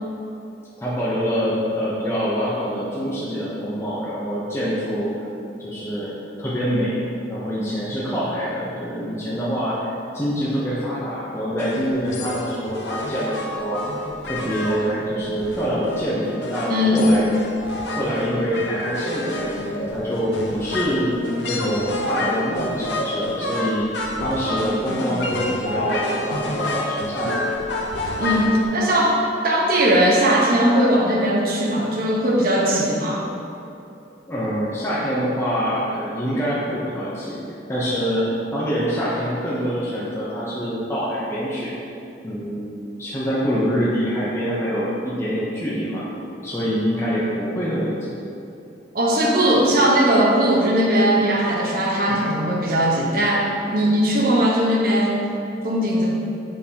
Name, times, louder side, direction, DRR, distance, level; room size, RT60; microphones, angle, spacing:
voice 1, 0.8-5.3 5.6-6.1 6.4-7.0 7.3-13.8 14.2-17.3 18.0-21.2 21.5-23.9 24.2-27.5 34.3-37.4 37.7-41.7 42.2-42.7 43.0-46.1 46.4-48.2 52.1-52.2, equal, 15° left, -8 dB, 0.8 m, -25 dB
sound 1, 11.6-28.7, left 1 dB, 90° left, 0.7 m, -28 dB
voice 2, 16.7-17.1 28.2-29.2 29.4-33.3 48.9-55.3 55.6-56.1, right 1 dB, 55° right, -3 dB, 1.0 m, -19 dB
6.5 x 5.3 x 2.9 m, 2.7 s
head